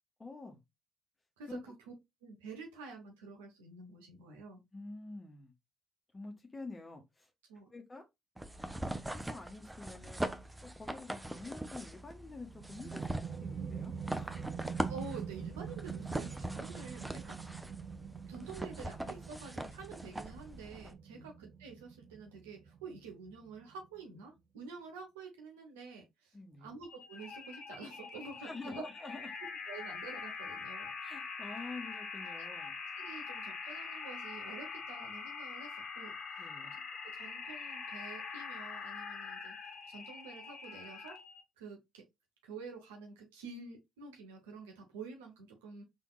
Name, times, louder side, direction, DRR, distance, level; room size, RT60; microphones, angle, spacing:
voice 1, 0.2-0.6 1.5-1.6 4.7-5.5 6.1-7.3 7.7-8.0 9.1-10.2 10.8-14.5 21.1-21.3 26.3-26.7 28.4-29.3 31.0-32.8 36.4-36.8, left 3 dB, 25° left, 1.1 m, -47 dB
voice 2, 1.4-1.9 2.2-4.6 7.5-7.7 14.9-17.7 18.3-28.9 29.7-30.9 32.4-32.5 33.0-39.5 39.8-41.2 41.6-42.0 42.4-45.8, right 4 dB, 85° right, 0.9 m, -49 dB
sound 1, 8.4-20.9, right 1 dB, 10° right, 0.7 m, -42 dB
sound 2, 12.5-23.9, right 6 dB, 55° right, 0.6 m, -45 dB
sound 3, 26.8-41.4, left 5 dB, 60° left, 1.1 m, -44 dB
4.3 x 3.6 x 2.3 m
hypercardioid pair, 45°, 0 cm